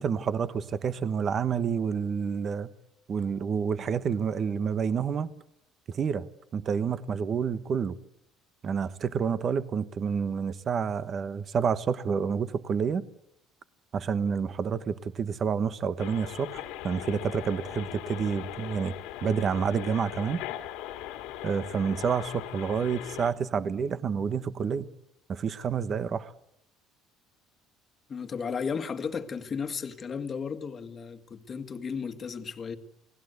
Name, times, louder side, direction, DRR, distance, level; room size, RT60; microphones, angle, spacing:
voice 1, 0.0-2.7 3.1-5.3 5.9-8.0 8.6-13.0 13.9-18.9 19.2-20.4 21.4-24.9 25.3-26.3, right 6 dB, 35° right, 1.2 m, -29 dB
sound 1, 16.0-23.3, left 13 dB, 85° left, 2.6 m, -39 dB
voice 2, 28.1-32.8, left 6 dB, 30° left, 1.8 m, -34 dB
29.5 x 19.0 x 8.2 m
cardioid pair, 145°, 0 cm